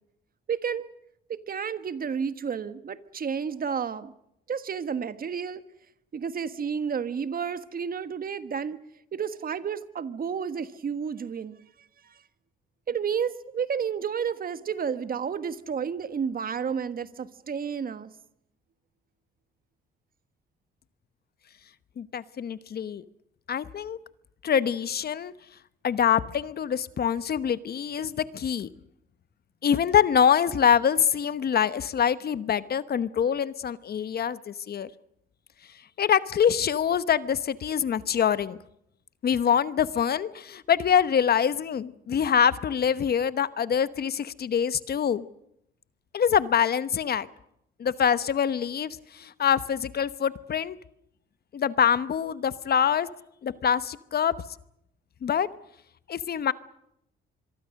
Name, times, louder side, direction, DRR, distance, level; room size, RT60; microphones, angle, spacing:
voice 1, 0.5-0.9 1.3-4.1 4.5-5.6 6.1-8.8 9.1-11.6 12.0-12.2 12.9-18.1, right 7 dB, 45° right, 12 dB, 1.5 m, -31 dB
voice 2, 22.0-23.0 23.5-24.0 24.4-25.3 25.8-28.7 29.6-34.9 36.0-38.6 39.2-45.2 46.1-47.3 47.8-50.8 51.5-53.1 53.4-54.3 55.2-55.5 56.1-56.5, left 8 dB, 50° left, 15 dB, 1.0 m, -25 dB
25.5 x 23.0 x 6.5 m, 0.77 s
cardioid pair, 90°, 20 cm